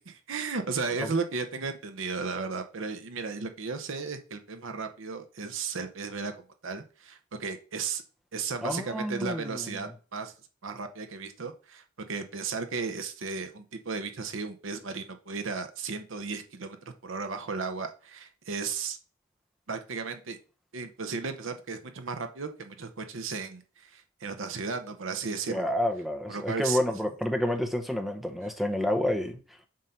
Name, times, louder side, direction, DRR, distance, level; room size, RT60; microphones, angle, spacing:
voice 1, 0.0-6.3 6.6-8.0 8.3-10.3 10.6-19.0 19.7-20.4 20.7-25.7 26.3-26.8, right 4 dB, 65° right, 0.7 m, -35 dB
voice 2, 8.6-9.8 25.5-29.4, left 1 dB, ahead, 0.7 m, -29 dB
7.5 x 2.7 x 5.6 m
head